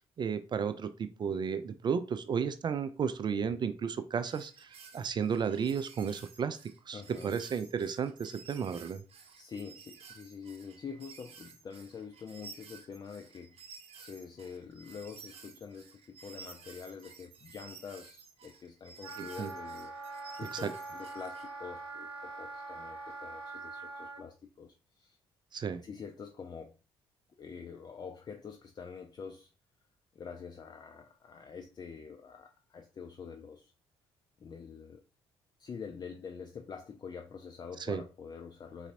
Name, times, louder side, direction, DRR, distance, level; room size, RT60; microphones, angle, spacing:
voice 1, 0.2-6.6 6.9-9.0 19.2-19.5 20.5-20.7 25.5-25.8 37.9-38.0, right 7 dB, 35° right, 0.4 m, -33 dB
sound 1, 4.2-21.5, right 5 dB, 50° right, 0.9 m, -53 dB
voice 2, 6.9-7.3 9.4-13.7 14.0-19.9 20.4-25.2 25.8-26.7 27.4-29.5 30.1-33.7 34.4-35.0 35.6-38.9, left 6 dB, 30° left, 0.5 m, -46 dB
Wind instrument woodwind instrument, 19.0-24.2, right 3 dB, 85° right, 0.5 m, -43 dB
4.0 x 4.0 x 2.6 m
figure-of-eight pair, 45°, 13 cm